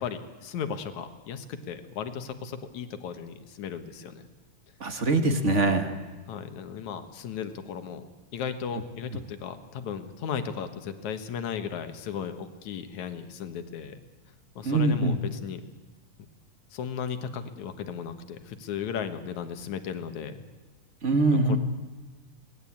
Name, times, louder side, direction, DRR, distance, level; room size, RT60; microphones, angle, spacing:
voice 1, 0.0-4.3 6.3-8.1 8.3-14.0 14.6-15.6 16.7-20.4 21.3-21.6, left 7 dB, 65° left, 9 dB, 2.6 m, -36 dB
voice 2, 4.8-5.9 14.6-15.2 21.0-21.6, right 2 dB, 35° right, 7 dB, 1.2 m, -23 dB
26.5 x 19.0 x 8.7 m, 1.3 s
omnidirectional pair, 3.9 m